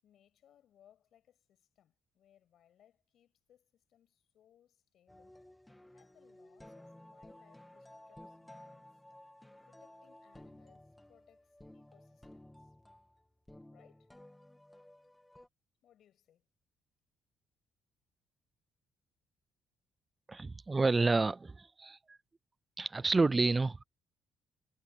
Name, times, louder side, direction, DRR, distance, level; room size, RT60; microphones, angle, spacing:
voice 1, 0.0-5.4 5.9-9.0 9.6-12.7 13.7-14.1 15.8-16.5, left 10 dB, 60° left, 6.5 m, -68 dB
sound 1, 5.1-15.5, left 1 dB, 5° left, 2.6 m, -56 dB
voice 2, 20.3-22.2 22.8-23.8, right 3 dB, 20° right, 0.4 m, -29 dB
cardioid pair, 135°, 0 cm